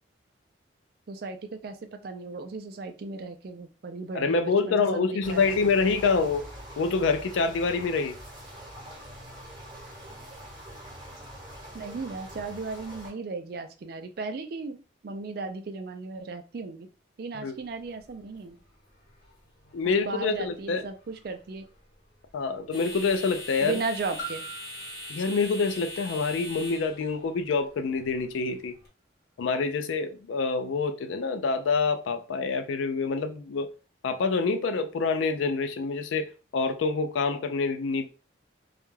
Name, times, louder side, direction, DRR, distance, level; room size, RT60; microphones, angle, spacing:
voice 1, 1.1-5.7 11.7-16.9 17.2-18.6 19.8-21.7 23.6-24.5, right 3 dB, 50° right, 0.4 m, -36 dB
voice 2, 4.1-6.4 6.8-8.2 17.3-17.6 19.7-20.8 22.3-23.7 25.1-28.8 29.4-33.7 34.0-38.1, left 4 dB, 80° left, 0.4 m, -26 dB
sound 1, 5.2-13.1, equal, 20° right, 1.1 m, -44 dB
sound 2, 17.5-28.9, left 1 dB, 55° left, 1.1 m, -44 dB
Piano, 24.2-29.6 30.3-30.4, right 3 dB, 35° left, 0.8 m, -46 dB
2.3 x 2.2 x 3.1 m
head